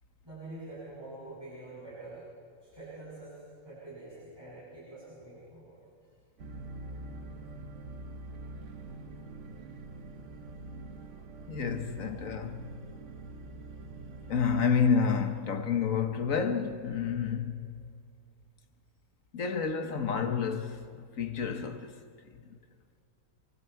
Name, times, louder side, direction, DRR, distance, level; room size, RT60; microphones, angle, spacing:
voice 1, 0.2-2.2 2.6-5.8 12.0-12.1, right 2 dB, 15° right, 7.3 m, -46 dB
sound 1, 6.4-14.6, right 2 dB, 50° right, 1.2 m, -44 dB
voice 2, 11.5-12.7 14.3-17.8 19.3-21.9, left 6 dB, 55° left, 1.4 m, -29 dB
27.5 x 24.0 x 4.6 m
omnidirectional pair, 1.9 m